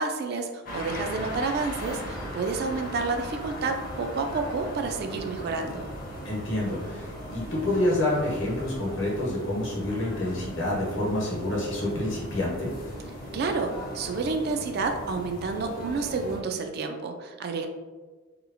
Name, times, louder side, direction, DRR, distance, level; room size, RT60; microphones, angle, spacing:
voice 1, 0.0-5.9 13.3-17.7, right 4 dB, 55° right, 5 dB, 0.3 m, -30 dB
sound 1, 0.7-16.4, equal, 45° left, 0.6 m, -38 dB
voice 2, 6.2-12.7, left 1 dB, 70° left, -4 dB, 0.9 m, -28 dB
2.9 x 2.3 x 2.5 m, 1.3 s
head